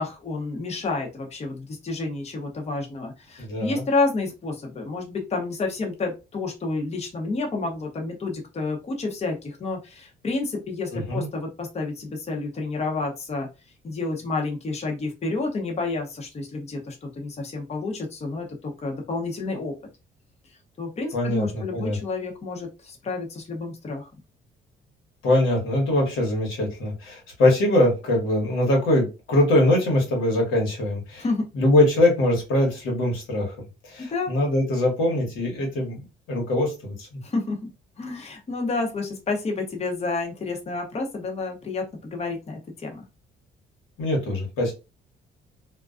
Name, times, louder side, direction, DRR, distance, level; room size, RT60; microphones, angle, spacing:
voice 1, 0.0-13.5 13.8-19.7 20.8-24.1 31.2-31.4 34.1-34.3 37.2-37.6 38.0-43.0, left 3 dB, 35° left, 1 dB, 0.7 m, -29 dB
voice 2, 3.4-3.8 10.9-11.3 21.1-22.0 25.2-31.2 31.5-33.6 33.8-36.0 36.3-37.2 44.0-44.7, left 1 dB, 85° left, -1 dB, 1.1 m, -22 dB
2.3 x 2.2 x 2.4 m, 0.28 s
cardioid pair, 90°, 20 cm